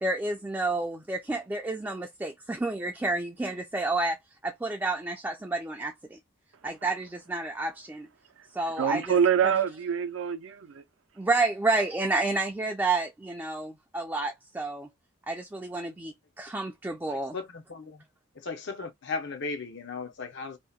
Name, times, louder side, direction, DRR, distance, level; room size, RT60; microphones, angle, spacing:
voice 1, 0.0-4.2 4.4-6.2 6.6-8.1 8.5-9.2 11.2-14.9 15.3-17.4, right 2 dB, 10° right, 0.3 m, -30 dB
voice 2, 8.8-10.8, right 7 dB, 70° right, 0.5 m, -25 dB
voice 3, 17.1-18.0 18.3-20.6, left 4 dB, 60° left, 0.6 m, -36 dB
2.7 x 2.1 x 2.3 m
head